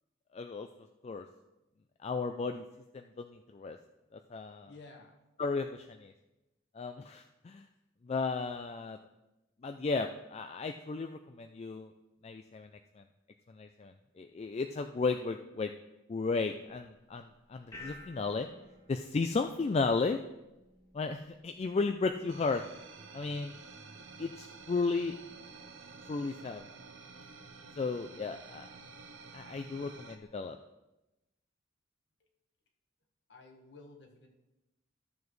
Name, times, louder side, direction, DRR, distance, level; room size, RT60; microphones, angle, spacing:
voice 1, 0.3-0.7 1.0-1.2 2.0-2.7 2.9-3.8 4.1-4.7 5.4-6.1 6.7-7.7 8.0-9.0 9.6-11.9 12.2-12.7 13.0-13.1 13.5-15.7 16.1-18.5 18.9-20.2 20.9-22.6 23.1-23.6 24.2-25.2 26.1-26.6 27.8-28.7 29.3-30.6, left 4 dB, 30° left, 6 dB, 0.3 m, -34 dB
voice 2, 4.7-5.2 33.3-34.3, left 3 dB, 60° left, 3 dB, 1.3 m, -53 dB
sound 1, 16.7-30.2, left 1 dB, 15° left, 1.4 m, -58 dB
sound 2, 22.3-30.2, right 4 dB, 75° right, 0.8 m, -51 dB
13.5 x 7.1 x 3.2 m, 0.99 s
head